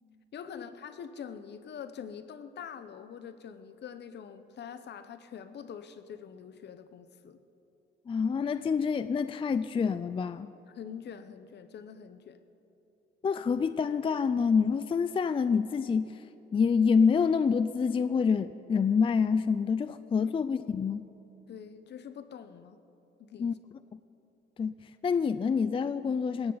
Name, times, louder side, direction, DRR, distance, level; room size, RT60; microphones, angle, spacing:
voice 1, 0.3-7.4 10.7-12.4 21.5-22.8 23.2-23.5, left 7 dB, 60° left, 11 dB, 0.9 m, -44 dB
voice 2, 8.1-10.5 13.2-16.3 16.5-21.1 23.4-23.5 24.6-26.5, left 6 dB, 25° left, 13 dB, 0.4 m, -27 dB
19.5 x 17.0 x 4.0 m, 3.0 s
cardioid pair, 90°, 20 cm